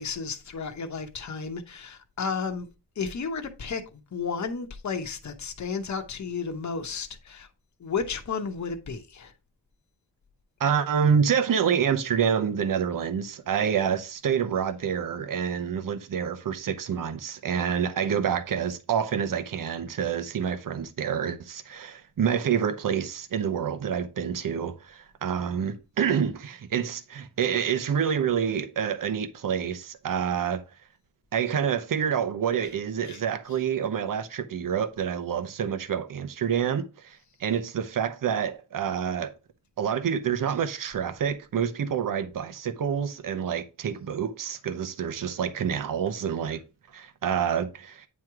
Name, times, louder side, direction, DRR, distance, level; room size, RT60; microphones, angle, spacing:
voice 1, 0.0-2.7 3.0-3.8 4.1-7.5 7.8-9.3 33.1-33.2, left 5 dB, 45° left, 1.0 m, -32 dB
voice 2, 10.6-30.6 31.3-39.3 39.8-46.6 46.9-48.1, right 7 dB, 55° right, 0.8 m, -27 dB
9.3 x 3.1 x 4.7 m
wide cardioid pair, 155°, 39 cm